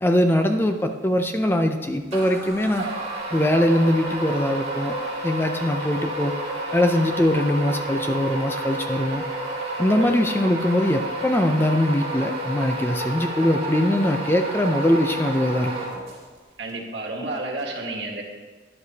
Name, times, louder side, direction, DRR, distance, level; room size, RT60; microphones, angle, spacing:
voice 1, 0.0-2.9 3.3-5.0 5.2-6.3 6.7-9.2 9.8-15.7, left 1 dB, 10° left, 6 dB, 0.4 m, -22 dB
sound 1, 2.1-16.4, right 1 dB, 40° right, 2.7 m, -30 dB
voice 2, 16.6-18.2, right 2 dB, 70° right, 0 dB, 1.6 m, -31 dB
11.5 x 11.0 x 2.8 m, 1.4 s
head